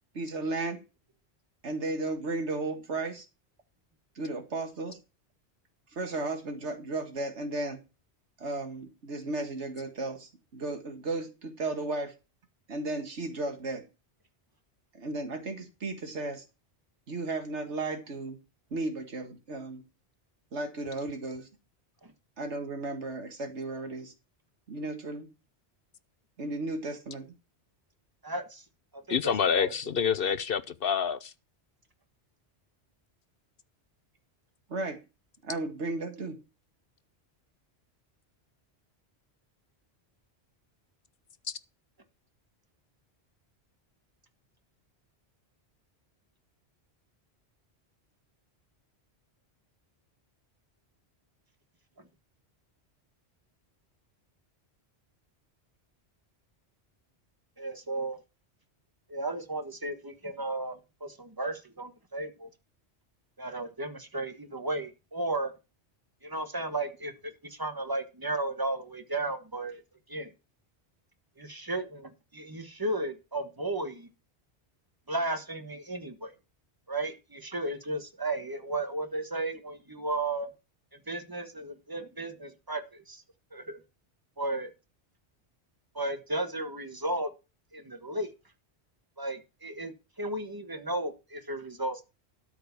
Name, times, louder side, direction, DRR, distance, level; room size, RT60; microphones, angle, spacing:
voice 1, 0.1-0.8 1.6-3.3 4.2-5.0 5.9-7.8 8.4-12.1 12.7-13.8 14.9-16.4 17.1-18.4 18.7-19.8 20.5-21.5 22.4-24.1 24.7-25.3 26.4-27.3 34.7-35.0 35.4-36.4, right 2 dB, 90° right, 2.0 m, -34 dB
voice 2, 28.2-28.6 28.9-29.9 52.0-52.1 57.6-58.2 59.1-62.5 63.4-65.5 66.2-69.8 70.1-70.3 71.4-74.1 75.1-76.3 76.9-80.5 80.9-83.2 83.5-83.8 84.4-84.7 85.9-87.3 87.7-88.3 89.2-92.0, right 2 dB, 20° right, 1.5 m, -34 dB
voice 3, 29.1-31.3, left 7 dB, 60° left, 0.9 m, -27 dB
12.5 x 4.9 x 7.2 m
omnidirectional pair, 1.1 m